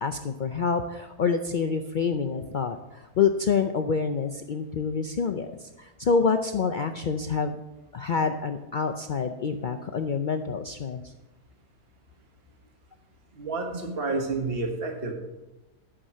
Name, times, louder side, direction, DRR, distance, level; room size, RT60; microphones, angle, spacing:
voice 1, 0.0-7.6 7.9-11.1, left 5 dB, 90° left, 6 dB, 0.4 m, -27 dB
voice 2, 13.3-15.1, right 3 dB, 40° right, 2 dB, 1.6 m, -29 dB
11.5 x 6.1 x 7.5 m, 1.0 s
omnidirectional pair, 1.6 m